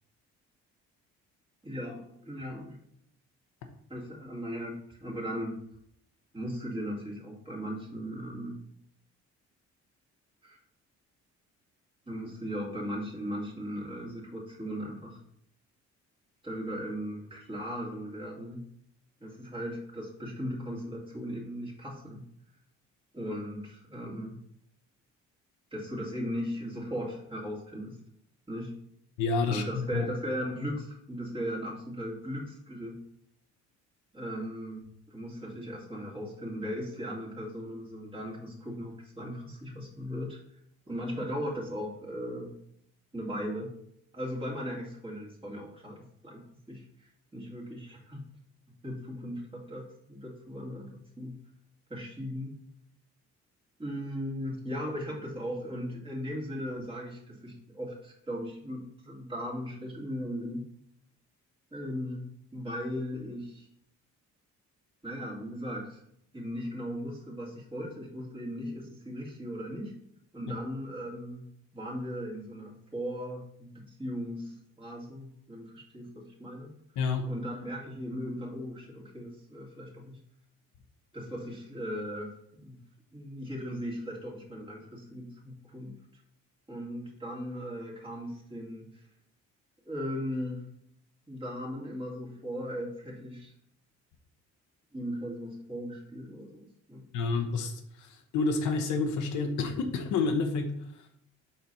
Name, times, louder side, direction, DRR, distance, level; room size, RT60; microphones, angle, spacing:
voice 1, 1.6-2.8 3.9-5.6 6.3-8.6 10.4-10.6 12.1-15.2 16.4-18.6 19.2-22.2 23.1-24.4 25.7-28.0 28.5-28.7 29.5-33.0 34.1-34.8 35.1-40.4 40.9-42.5 43.1-43.7 44.1-48.2 48.8-51.4 51.9-52.6 53.8-60.7 61.7-62.2 62.5-63.7 65.0-66.0 66.3-69.9 70.3-71.4 71.7-76.7 77.3-80.2 81.1-82.8 83.1-85.9 86.7-89.0 89.8-90.6 91.3-93.5 94.9-97.0, equal, 20° right, -3 dB, 2.1 m, -38 dB
voice 2, 29.2-30.1 77.0-77.3 97.1-101.1, left 4 dB, 80° left, 5 dB, 0.9 m, -29 dB
4.3 x 4.1 x 5.4 m, 0.71 s
cardioid pair, 95°, 30 cm